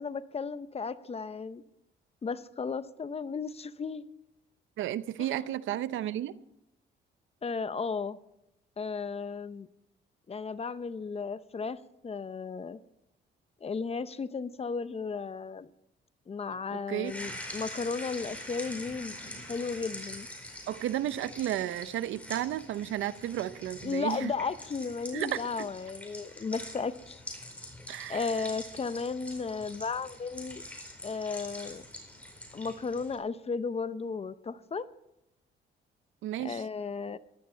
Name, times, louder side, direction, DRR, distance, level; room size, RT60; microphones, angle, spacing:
voice 1, 0.0-1.6 2.2-4.1 5.2-5.5 7.4-8.2 8.8-9.7 10.3-11.8 12.0-12.8 13.6-15.7 16.3-19.2 19.5-20.3 23.8-27.2 28.1-30.6 31.0-31.8 32.5-34.8 36.4-37.2, left 5 dB, 30° left, 0.7 m, -34 dB
voice 2, 4.8-6.4 16.7-17.1 20.7-24.3 25.1-25.7 27.9-28.4 36.2-36.6, right 12 dB, 80° right, 0.7 m, -33 dB
sound 1, 17.0-33.2, left 1 dB, 5° left, 4.4 m, -45 dB
15.5 x 12.0 x 4.5 m
cardioid pair, 90°, 20 cm